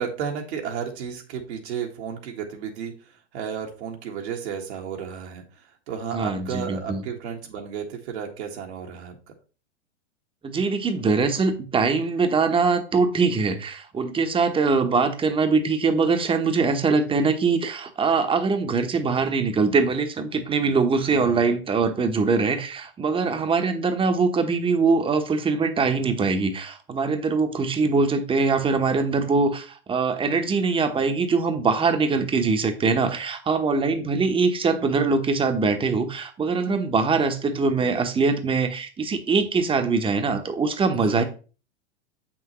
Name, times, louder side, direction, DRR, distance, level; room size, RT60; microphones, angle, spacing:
voice 1, 0.0-2.9 3.3-5.4 5.9-9.1 21.1-21.4 41.1-41.2, right 7 dB, 65° right, 1.6 m, -32 dB
voice 2, 6.1-7.0 10.4-41.2, right 4 dB, 15° right, 1.0 m, -22 dB
7.2 x 6.1 x 3.1 m
hypercardioid pair, 110°, 36 cm